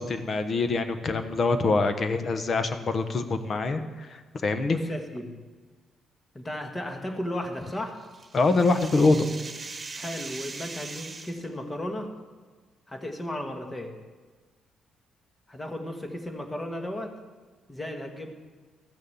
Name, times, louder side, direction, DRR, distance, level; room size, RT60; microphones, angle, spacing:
voice 1, 0.0-4.8 8.3-9.3, left 3 dB, 45° left, 9 dB, 1.0 m, -25 dB
voice 2, 4.7-5.4 6.3-8.0 9.9-12.3 12.9-14.0 15.5-17.2 17.7-18.3, left 1 dB, 20° left, 4 dB, 1.7 m, -35 dB
sound 1, 7.6-11.4, right 3 dB, 30° right, 1.6 m, -40 dB
14.0 x 6.5 x 7.2 m, 1.4 s
cardioid pair, 90°, 0 cm